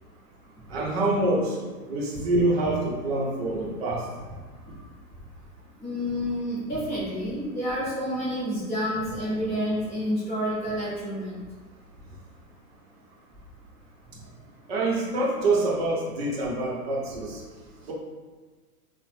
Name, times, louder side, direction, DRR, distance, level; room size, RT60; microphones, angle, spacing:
voice 1, 0.7-1.6 1.9-4.1 14.7-17.4 17.8-17.9, right 2 dB, 40° right, -3 dB, 0.7 m, -26 dB
voice 2, 5.8-11.4, equal, 15° left, -10 dB, 0.6 m, -29 dB
2.8 x 2.1 x 3.2 m, 1.3 s
hypercardioid pair, 150°, 47 cm